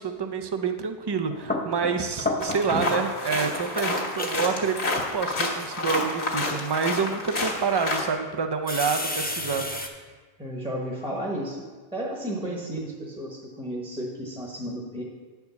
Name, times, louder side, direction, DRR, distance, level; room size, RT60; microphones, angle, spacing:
voice 1, 0.0-9.6, right 5 dB, 35° right, 7 dB, 0.4 m, -28 dB
sound 1, 1.1-3.0 3.3-5.9 6.5-7.0 7.7-7.8 8.7-9.9, left 1 dB, 10° left, 0.6 m, -32 dB
sound 2, 2.4-8.1, left 2 dB, 75° left, 1.6 m, -29 dB
voice 2, 10.4-11.6 11.9-15.0, equal, 5° right, -2 dB, 1.0 m, -33 dB
9.6 x 4.6 x 6.8 m, 1.4 s
omnidirectional pair, 1.1 m